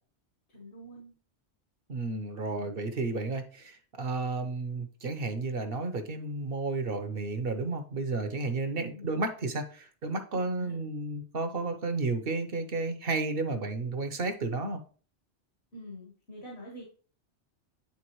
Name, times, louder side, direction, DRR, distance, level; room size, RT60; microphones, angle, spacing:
voice 1, 0.5-1.2 2.5-2.7 8.7-9.2 10.3-10.9 15.7-16.8, equal, 65° left, -2 dB, 1.7 m, -46 dB
voice 2, 1.9-14.8, right 3 dB, 55° right, 7 dB, 1.0 m, -32 dB
9.6 x 3.5 x 3.0 m, 0.40 s
omnidirectional pair, 1.2 m